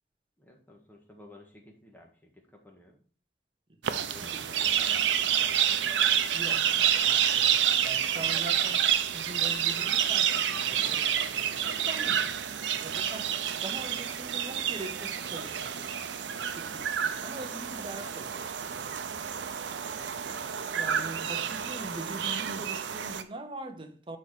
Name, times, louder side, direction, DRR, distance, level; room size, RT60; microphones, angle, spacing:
voice 1, 0.4-3.1 3.9-5.9 20.2-21.5, left 1 dB, 10° left, 1.6 m, -54 dB
voice 2, 3.7-4.7 6.3-16.0 16.5-19.0 20.7-24.2, right 2 dB, 30° right, 0.8 m, -43 dB
sound 1, 3.8-23.2, right 9 dB, 80° right, 0.6 m, -29 dB
6.8 x 4.8 x 4.9 m
head